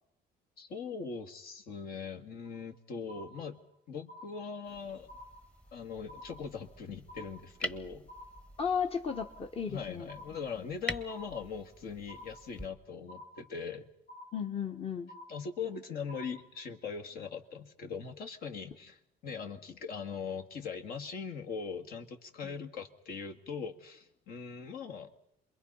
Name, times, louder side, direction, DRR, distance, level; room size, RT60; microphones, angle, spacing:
voice 1, 0.6-3.6 3.9-5.1 5.7-8.1 9.7-13.9 15.3-25.1, left 5 dB, 65° left, 4 dB, 2.1 m, -41 dB
sound 1, 2.4-2.8 3.1-3.8 4.1-4.8 5.1-5.8 6.1-6.8 7.1-7.8 8.1-8.8 9.1-9.8 10.1-10.8 11.1-11.8 12.1-12.8 13.1-13.8 14.1-14.8 15.1-15.8 16.1-16.8, left 1 dB, 80° left, 2.5 m, -52 dB
sound 2, 4.6-12.7, equal, 5° left, 1.0 m, -46 dB
voice 2, 8.6-10.1 14.3-15.1 22.4-22.5, left 6 dB, 35° left, 5 dB, 1.3 m, -34 dB
27.5 x 22.0 x 5.6 m, 0.73 s
cardioid pair, 110°, 17 cm